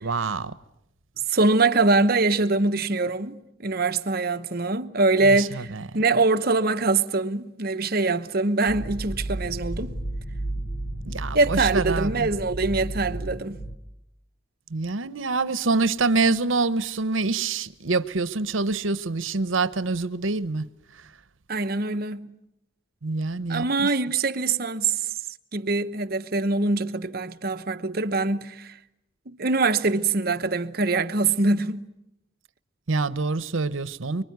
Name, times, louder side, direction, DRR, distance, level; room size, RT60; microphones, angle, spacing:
voice 1, 0.0-0.5 5.2-5.8 11.0-12.3 14.7-20.6 23.0-23.9 32.9-34.2, right 3 dB, 85° right, 0.9 m, -26 dB
voice 2, 1.3-10.0 11.3-13.6 21.5-22.4 23.5-25.0 25.5-28.7 29.3-31.8, right 3 dB, 50° right, 1.0 m, -23 dB
sound 1, 8.7-13.8, right 1 dB, 65° left, 1.5 m, -32 dB
25.0 x 24.0 x 9.4 m
head